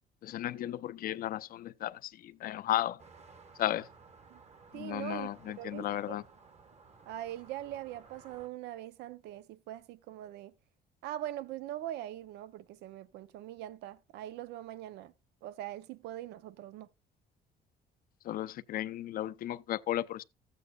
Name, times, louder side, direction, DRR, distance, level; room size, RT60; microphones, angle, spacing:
voice 1, 0.2-3.0 3.6-3.9 4.7-6.2 18.2-20.2, left 13 dB, 60° left, 0.6 m, -34 dB
sound 1, 3.0-8.5, right 4 dB, 40° right, 1.4 m, -57 dB
voice 2, 4.7-5.3 5.6-6.2 7.1-10.5 11.0-15.1 15.4-16.9, right 13 dB, 85° right, 0.7 m, -42 dB
14.5 x 8.3 x 2.3 m
cardioid pair, 110°, 17 cm